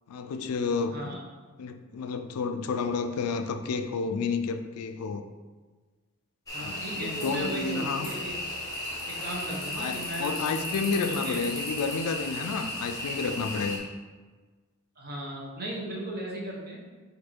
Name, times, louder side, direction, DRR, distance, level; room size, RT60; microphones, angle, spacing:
voice 1, 0.1-1.2 1.6-5.2 6.6-8.1 9.8-13.8, left 4 dB, 85° left, 8 dB, 0.4 m, -31 dB
sound 1, 6.5-13.8, left 1 dB, 15° left, 0.9 m, -35 dB
voice 2, 6.5-8.3 9.0-10.6 10.9-11.4 15.0-16.9, right 1 dB, 45° right, -3 dB, 1.0 m, -36 dB
4.5 x 2.7 x 4.4 m, 1.4 s
head